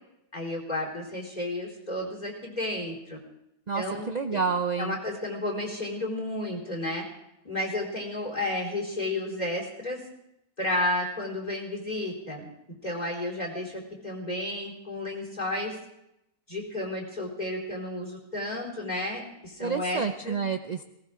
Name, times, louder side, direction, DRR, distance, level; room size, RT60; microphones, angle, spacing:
voice 1, 0.3-3.2 3.7-4.4 4.8-7.0 7.4-10.0 10.6-12.5 12.8-15.8 16.5-20.4, left 1 dB, 25° left, -2 dB, 4.2 m, -32 dB
voice 2, 3.7-5.0 19.6-20.8, right 5 dB, 55° right, 7 dB, 0.4 m, -29 dB
19.5 x 18.5 x 3.7 m, 0.83 s
omnidirectional pair, 1.6 m